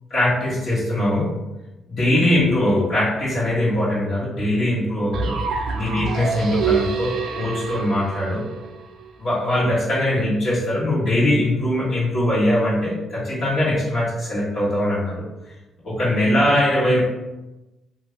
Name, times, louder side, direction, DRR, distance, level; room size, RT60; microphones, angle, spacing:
voice 1, 0.1-1.3 1.9-5.4 5.7-8.5 9.2-15.2 15.8-17.0, left 1 dB, 60° left, -10 dB, 1.1 m, -21 dB
sound 1, 5.1-9.1, right 5 dB, 75° right, 0.4 m, -26 dB
2.7 x 2.6 x 3.1 m, 1.0 s
cardioid pair, 90°, 0 cm